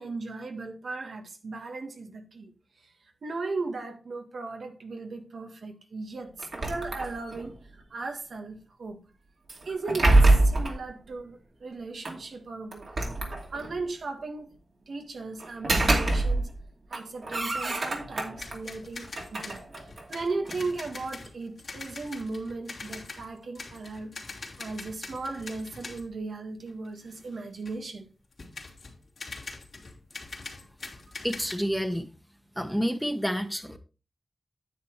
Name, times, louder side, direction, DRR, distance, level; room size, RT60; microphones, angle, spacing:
voice 1, 0.0-2.5 2.8-2.9 3.2-7.5 7.9-9.0 9.6-12.9 13.5-14.6 14.9-16.5 16.9-19.6 20.1-28.1, right 3 dB, 85° right, 1.6 m, -37 dB
sound 1, 6.4-7.5 9.5-10.8 12.0-12.2 12.7-13.8 15.4-16.6 16.9-18.6 19.0-20.7, right 2 dB, 65° right, 2.5 m, -25 dB
sound 2, 18.4-26.1 26.7-27.8 28.3-31.5, left 3 dB, 70° left, 2.6 m, -43 dB
voice 2, 31.2-32.1 32.6-33.8, equal, ahead, 1.2 m, -29 dB
9.6 x 8.0 x 3.2 m
wide cardioid pair, 80°, 0 cm